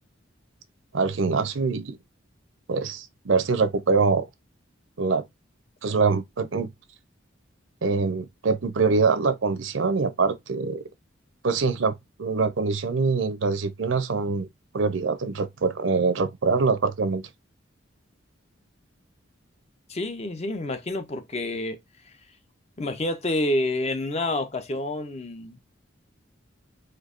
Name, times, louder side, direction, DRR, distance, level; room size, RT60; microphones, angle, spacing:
voice 1, 0.9-2.0 2.7-4.3 5.0-5.2 5.8-6.7 7.8-10.8 11.4-14.5 14.7-17.2, right 4 dB, 75° right, 0.6 m, -24 dB
voice 2, 19.9-21.8 22.8-25.6, left 1 dB, 35° left, 0.6 m, -28 dB
4.4 x 2.7 x 2.4 m
head